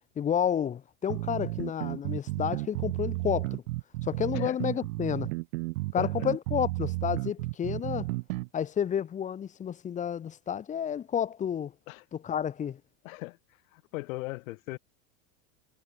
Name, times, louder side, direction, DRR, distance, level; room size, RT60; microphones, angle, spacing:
voice 1, 0.2-3.6 4.0-5.3 5.9-8.1 8.5-11.7 12.1-12.8, left 8 dB, 20° left, 0.7 m, -30 dB
sound 1, 1.1-8.5, right 22 dB, 70° right, 1.9 m, -32 dB
voice 2, 6.0-6.3 11.9-12.0 13.0-13.4 13.7-14.8, left 22 dB, 70° left, 2.6 m, -38 dB
supercardioid pair, 135°, 42 cm